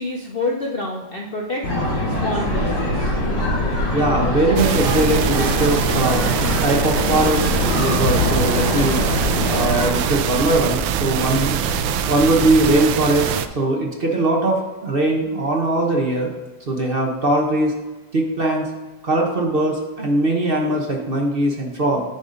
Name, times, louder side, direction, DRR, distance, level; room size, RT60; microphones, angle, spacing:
voice 1, 0.0-1.6 2.1-3.1, left 2 dB, 90° left, 0 dB, 0.5 m, -27 dB
sound 1, 1.6-9.9, left 2 dB, 40° left, 2.6 m, -23 dB
sound 2, 2.4-12.9, right 1 dB, 55° right, 1.2 m, -30 dB
voice 2, 3.9-6.3 6.6-11.5 11.8-16.3 16.7-17.8 18.1-18.7 19.0-22.0, right 1 dB, 40° right, 0 dB, 0.9 m, -20 dB
sound 3, 4.6-13.5, right 9 dB, 85° right, 1.3 m, -23 dB
10.0 x 4.1 x 5.1 m, 1.1 s
omnidirectional pair, 2.1 m